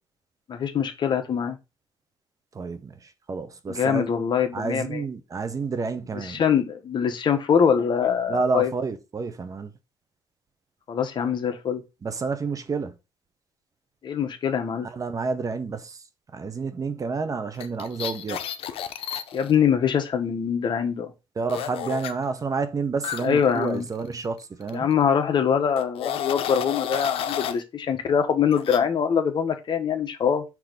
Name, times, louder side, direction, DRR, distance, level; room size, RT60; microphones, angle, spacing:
voice 1, 0.5-1.6 3.7-5.0 6.1-8.7 10.9-11.8 14.0-14.9 19.3-21.1 23.2-23.8 24.7-30.4, left 7 dB, 55° left, 1.1 m, -23 dB
voice 2, 2.5-4.1 4.5-6.4 8.3-9.7 12.0-12.9 14.8-16.0 16.3-18.4 21.4-24.9, right 4 dB, 35° right, 0.9 m, -29 dB
sound 1, 17.5-19.5 21.5-22.1 23.0-24.4 24.7-24.9 25.8-27.6 28.5-28.8, left 9 dB, 80° left, 0.7 m, -32 dB
6.1 x 3.0 x 5.1 m
cardioid pair, 105°, 10 cm